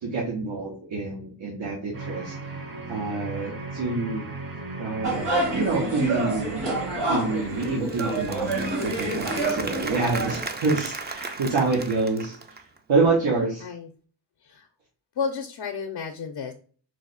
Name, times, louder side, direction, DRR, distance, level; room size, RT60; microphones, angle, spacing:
voice 1, 0.0-4.3 4.8-6.6 7.1-12.4 12.9-13.7, right 3 dB, 85° right, -3 dB, 0.9 m, -27 dB
sound 1, 1.9-7.8, right 3 dB, 50° right, 0.8 m, -37 dB
sound 2, 5.0-10.4, right 2 dB, 70° right, 1.5 m, -28 dB
Applause / Crowd, 7.4-12.8, right 4 dB, 25° right, 0.3 m, -36 dB
voice 2, 15.2-16.5, left 5 dB, 65° left, 3 dB, 0.5 m, -32 dB
3.1 x 2.0 x 3.8 m, 0.42 s
wide cardioid pair, 70°, 45 cm